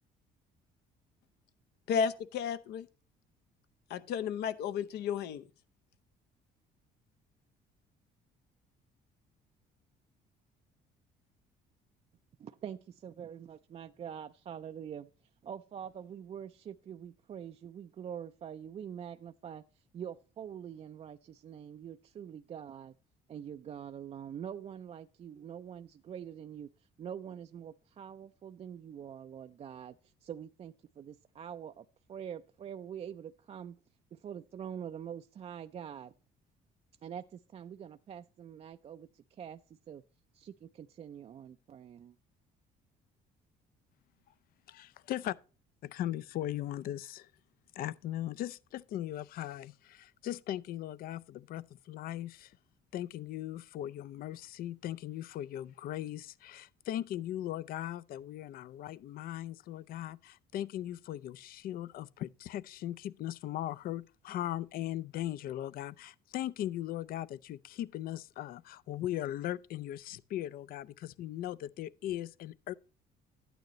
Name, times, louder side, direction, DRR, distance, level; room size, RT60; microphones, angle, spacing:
voice 1, 1.9-2.9 3.9-5.4, left 7 dB, 75° left, 0.8 m, -33 dB
voice 2, 12.4-15.1 15.4-22.9 23.3-33.8 34.1-36.1 37.0-39.6 39.9-40.0 40.3-42.1, right 8 dB, 35° right, 0.4 m, -45 dB
voice 3, 44.7-45.4 45.8-47.3 47.8-52.6 52.9-72.7, left 13 dB, 60° left, 0.4 m, -39 dB
12.0 x 9.1 x 3.0 m
cardioid pair, 110°, 17 cm